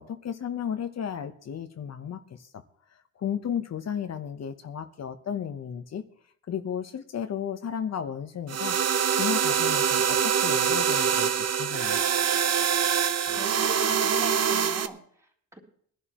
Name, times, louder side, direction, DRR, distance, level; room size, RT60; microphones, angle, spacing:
voice 1, 0.0-2.5 3.2-6.0 6.5-8.8 9.1-12.0, left 8 dB, 60° left, 8 dB, 0.9 m, -34 dB
sound 1, 8.5-14.9, right 7 dB, 55° right, 0.9 m, -24 dB
voice 2, 13.3-15.6, equal, 10° right, -1 dB, 3.4 m, -43 dB
21.0 x 11.0 x 3.0 m, 0.62 s
cardioid pair, 120°, 30 cm